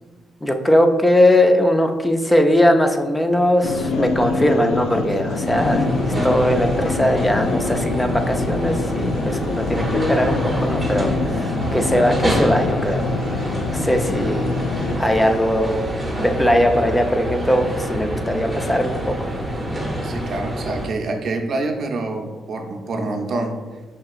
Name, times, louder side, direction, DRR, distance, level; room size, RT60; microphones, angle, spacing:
voice 1, 0.4-13.1 13.7-14.5 15.0-15.9 16.2-19.3, left 1 dB, 10° left, 5 dB, 0.4 m, -19 dB
sound 1, 3.6-15.0, left 3 dB, 80° left, 0.3 m, -25 dB
sound 2, 5.5-20.9, equal, 5° right, 0.8 m, -27 dB
voice 2, 20.0-23.5, right 2 dB, 55° right, 3 dB, 0.6 m, -27 dB
5.6 x 2.7 x 2.4 m, 1.3 s
cardioid pair, 90°, 0 cm